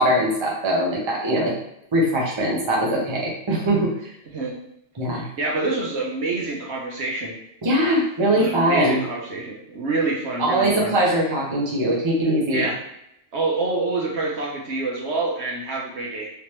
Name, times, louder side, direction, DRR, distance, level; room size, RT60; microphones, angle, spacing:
voice 1, 0.0-1.5 1.9-3.9 5.0-5.2 7.6-9.0 10.4-12.7, right 1 dB, 25° right, -3 dB, 0.8 m, -21 dB
voice 2, 5.1-7.3 8.3-10.9 12.5-12.8 13.3-16.3, right 3 dB, 65° right, -2 dB, 1.1 m, -27 dB
3.3 x 2.9 x 3.0 m, 0.79 s
omnidirectional pair, 1.3 m